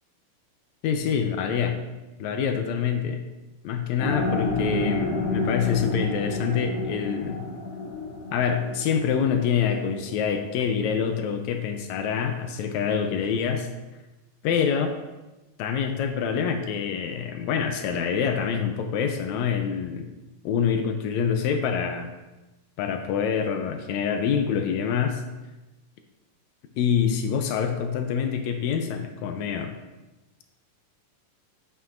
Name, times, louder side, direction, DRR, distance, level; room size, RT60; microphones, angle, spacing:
voice 1, 0.8-1.8 2.2-3.2 3.6-7.4 8.3-13.7 14.4-14.9 15.6-20.1 20.4-22.1 22.8-25.2 26.8-29.7, left 7 dB, 80° left, 6 dB, 1.7 m, -26 dB
sound 1, 4.0-10.1, left 2 dB, 50° left, 2.8 m, -30 dB
8.2 x 7.5 x 2.5 m, 1.1 s
omnidirectional pair, 3.6 m